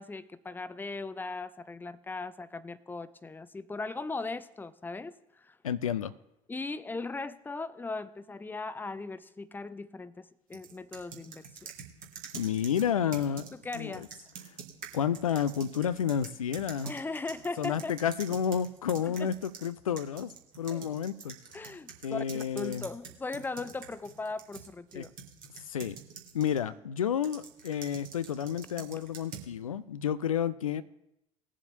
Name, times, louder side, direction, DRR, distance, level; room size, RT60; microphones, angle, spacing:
voice 1, 0.0-5.6 6.5-11.7 13.6-14.3 16.8-17.9 19.0-19.3 20.7-20.8 21.5-25.1, left 3 dB, 10° left, 16 dB, 0.6 m, -38 dB
voice 2, 5.6-6.1 12.3-14.1 14.4-14.6 14.9-16.9 17.6-20.3 20.6-21.8 22.0-22.9 24.9-25.0 25.6-26.0 26.3-30.8, left 8 dB, 80° left, 14 dB, 0.4 m, -31 dB
sound 1, 10.5-19.7 20.0-26.6 27.2-29.5, right 7 dB, 50° right, 1.7 m, -47 dB
20.0 x 7.3 x 2.7 m, 0.83 s
figure-of-eight pair, 55°, 17 cm